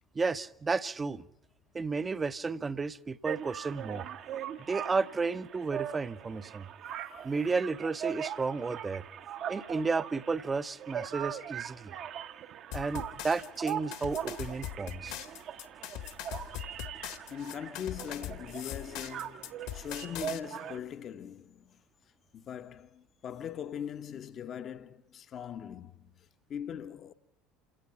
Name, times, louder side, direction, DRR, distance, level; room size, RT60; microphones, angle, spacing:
voice 1, 0.1-1.2 1.7-4.1 4.7-6.7 7.2-9.0 9.5-11.9 12.7-15.2, right 4 dB, 20° right, 0.8 m, -32 dB
sound 1, 3.2-20.8, right 9 dB, 45° right, 1.0 m, -41 dB
sound 2, 12.7-20.4, left 12 dB, 55° left, 1.7 m, -41 dB
voice 2, 17.3-21.8 22.3-27.1, left 8 dB, 40° left, 1.0 m, -41 dB
28.0 x 17.5 x 5.8 m
figure-of-eight pair, 65°, 0 cm